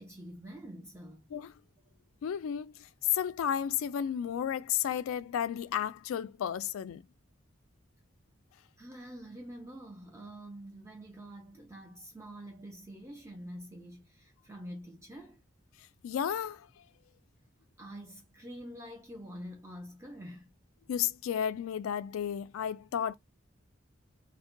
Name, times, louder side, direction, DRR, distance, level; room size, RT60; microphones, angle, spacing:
voice 1, 0.0-1.3 8.8-15.4 17.8-20.5, equal, 15° right, 0.6 m, -46 dB
voice 2, 2.2-7.0 16.0-16.8 20.9-23.1, left 9 dB, 90° left, 0.3 m, -33 dB
2.6 x 2.1 x 3.7 m
head